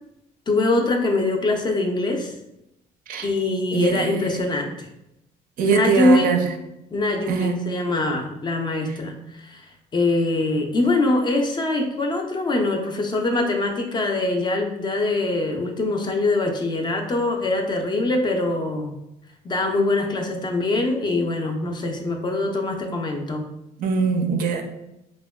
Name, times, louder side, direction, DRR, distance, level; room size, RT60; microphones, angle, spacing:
voice 1, 0.5-2.3 3.2-4.9 5.6-6.4 6.9-9.7 9.9-18.9 19.4-23.4, left 2 dB, 25° left, 3 dB, 0.4 m, -23 dB
voice 2, 3.7-4.1 5.6-6.5 7.3-7.6 23.8-24.8, right 5 dB, 55° right, 5 dB, 0.4 m, -22 dB
3.4 x 2.1 x 2.2 m, 0.86 s
cardioid pair, 110°, 17 cm